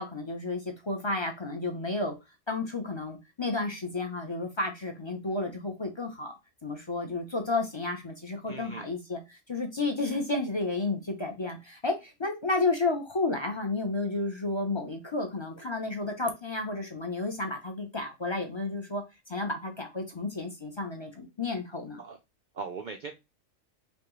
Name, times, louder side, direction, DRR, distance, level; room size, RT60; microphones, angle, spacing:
voice 1, 0.0-2.1 2.5-6.4 6.6-19.0 19.3-22.0, left 3 dB, 35° left, 0.5 m, -32 dB
voice 2, 8.5-8.9 22.0-22.2 22.5-23.1, right 4 dB, 80° right, 0.4 m, -39 dB
5.2 x 2.3 x 3.1 m
omnidirectional pair, 1.4 m